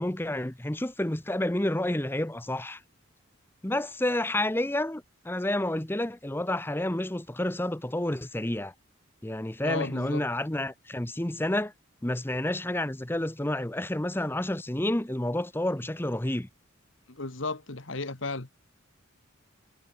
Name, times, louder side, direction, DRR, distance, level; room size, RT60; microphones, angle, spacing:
voice 1, 0.0-2.8 3.6-8.7 9.2-11.7 12.0-16.5, left 1 dB, 10° left, 0.8 m, -30 dB
voice 2, 9.6-10.3 17.1-18.5, left 3 dB, 70° left, 1.8 m, -34 dB
head